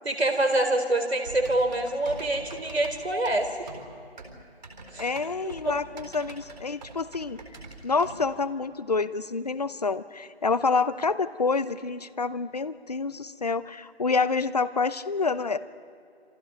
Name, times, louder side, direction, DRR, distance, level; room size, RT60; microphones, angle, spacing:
voice 1, 0.0-3.5 4.9-5.0 5.4-5.7, right 1 dB, 75° right, 4 dB, 4.5 m, -26 dB
Typing, 1.2-8.3, right 2 dB, 40° right, 4.2 m, -44 dB
voice 2, 5.0-7.4 7.8-15.6, left 4 dB, 40° left, 15 dB, 0.8 m, -27 dB
29.5 x 27.5 x 5.4 m, 2.4 s
figure-of-eight pair, 155°, 33 cm